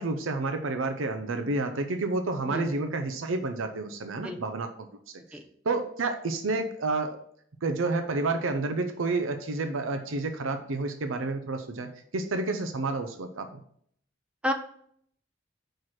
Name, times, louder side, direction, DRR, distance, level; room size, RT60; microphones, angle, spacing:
voice 1, 0.0-4.7 5.1-5.4 5.6-7.2 7.6-13.6, right 3 dB, 90° right, 7 dB, 0.6 m, -30 dB
voice 2, 2.5-2.6 4.2-4.4 5.3-5.4 14.4-14.5, left 1 dB, 5° right, 5 dB, 0.6 m, -29 dB
4.7 x 4.5 x 5.9 m, 0.64 s
head